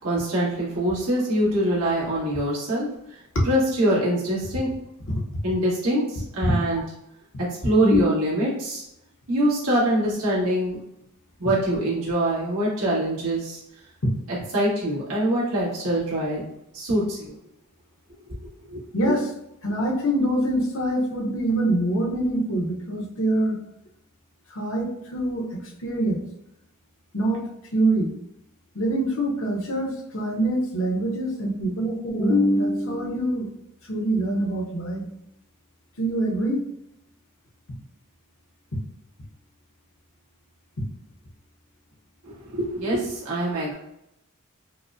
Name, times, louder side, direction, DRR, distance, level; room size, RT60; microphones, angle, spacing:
voice 1, 0.0-2.9 3.4-4.7 5.4-6.8 7.4-8.8 9.3-10.8 11.4-13.6 14.5-16.4 16.7-17.3 18.7-18.8 42.2-43.7, right 1 dB, 85° right, -7 dB, 1.5 m, -24 dB
voice 2, 5.1-5.4 6.5-6.6 7.8-8.0 14.0-14.1 18.9-19.3 19.6-23.6 24.5-26.2 27.1-27.5 27.7-28.1 28.7-33.5 33.9-35.1 36.0-36.6 40.8-40.9, right 1 dB, 60° left, -1 dB, 0.8 m, -24 dB
4.8 x 2.1 x 2.5 m, 0.81 s
head